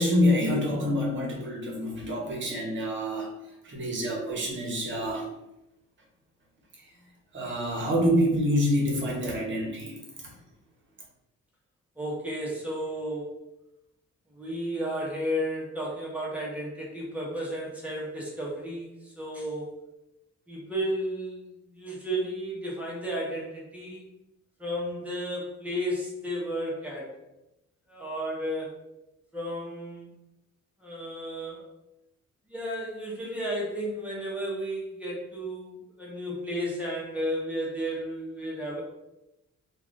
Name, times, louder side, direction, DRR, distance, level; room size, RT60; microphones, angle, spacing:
voice 1, 0.0-3.3 3.7-5.3 7.3-9.9, equal, 40° right, -2 dB, 0.9 m, -26 dB
voice 2, 12.0-13.3 14.3-19.6 20.5-21.4 21.7-24.0 24.6-27.1 27.9-28.8 29.3-30.1 30.8-31.6 32.5-38.8, equal, 5° right, -4 dB, 0.8 m, -33 dB
2.4 x 2.4 x 3.5 m, 0.90 s
cardioid pair, 140°, 30 cm